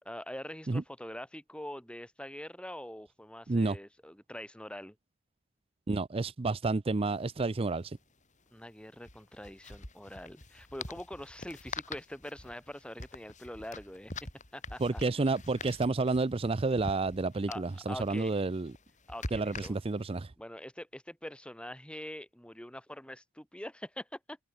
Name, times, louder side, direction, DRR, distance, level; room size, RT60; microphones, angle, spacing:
voice 1, 0.0-5.0 8.5-14.1 14.5-15.0 17.5-18.4 19.1-19.7 20.4-24.4, left 1 dB, 5° left, 2.7 m, -44 dB
voice 2, 5.9-8.0 14.8-18.7 19.3-20.3, right 3 dB, 30° right, 0.5 m, -30 dB
sound 1, 7.0-7.1 7.3-7.5 9.0-20.2, left 3 dB, 35° left, 7.8 m, -45 dB
head